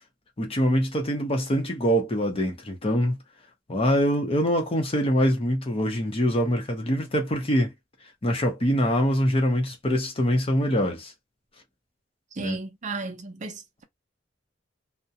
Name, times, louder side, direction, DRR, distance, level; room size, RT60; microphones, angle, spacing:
voice 1, 0.4-3.1 3.7-7.7 8.2-11.1 12.4-12.6, equal, 30° left, 0.7 m, -24 dB
voice 2, 12.3-13.8, right 3 dB, 40° right, 0.5 m, -34 dB
2.3 x 2.1 x 2.7 m
head